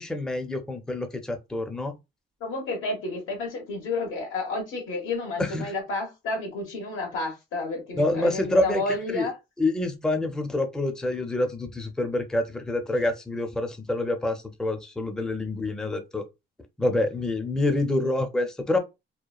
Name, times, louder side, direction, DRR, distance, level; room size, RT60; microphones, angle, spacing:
voice 1, 0.0-1.9 5.4-5.7 8.0-8.8 9.1-9.3 9.6-16.2 16.8-18.8, left 2 dB, 5° left, 0.4 m, -27 dB
voice 2, 2.4-9.3, left 3 dB, 90° left, 1.2 m, -31 dB
2.9 x 2.1 x 2.3 m
cardioid pair, 90°, 20 cm